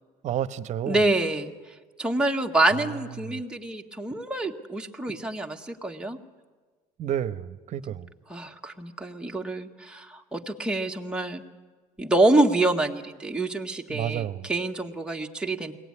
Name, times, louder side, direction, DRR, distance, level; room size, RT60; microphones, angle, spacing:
voice 1, 0.2-1.0 3.2-3.4 7.0-8.1 13.9-14.5, right 10 dB, 55° right, 0.9 m, -30 dB
voice 2, 0.9-6.2 8.3-11.4 12.0-15.7, right 2 dB, 5° right, 1.8 m, -26 dB
22.5 x 18.0 x 9.8 m
cardioid pair, 100°, 14 cm